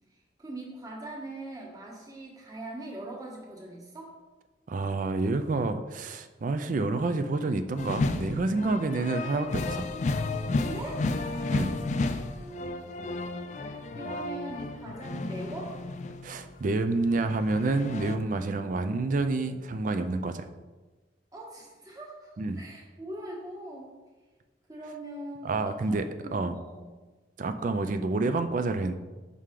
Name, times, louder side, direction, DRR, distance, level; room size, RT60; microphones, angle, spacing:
voice 1, 0.4-4.1 10.6-11.1 12.2-13.1 13.9-15.7 21.3-22.3 22.5-24.0 24.7-25.5 25.9-26.9 27.6-27.9, right 1 dB, 20° right, -3 dB, 1.3 m, -41 dB
voice 2, 4.7-9.9 11.5-11.7 16.2-20.4 22.4-22.6 25.4-26.6 27.4-28.9, right 3 dB, 45° right, 9 dB, 0.4 m, -28 dB
sound 1, 7.8-16.5 16.9-18.2, left 3 dB, 40° left, 0.3 m, -32 dB
5.6 x 4.8 x 3.7 m, 1.2 s
head